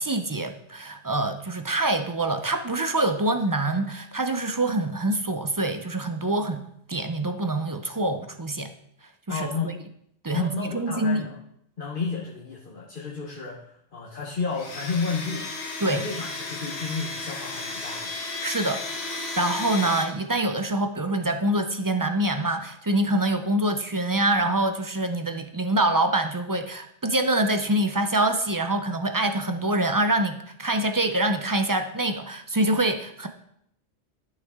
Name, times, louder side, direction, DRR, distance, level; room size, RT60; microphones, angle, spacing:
voice 1, 0.0-8.7 9.3-9.7 10.2-11.3 15.8-16.0 18.4-33.3, right 1 dB, 25° right, 7 dB, 0.5 m, -25 dB
voice 2, 9.3-9.8 10.3-11.4 11.8-15.5 15.9-18.1, left 4 dB, 50° left, -3 dB, 1.3 m, -32 dB
Domestic sounds home sounds, 14.5-20.0, left 3 dB, 65° left, 1.5 m, -34 dB
12.0 x 6.5 x 3.6 m, 0.73 s
omnidirectional pair, 1.2 m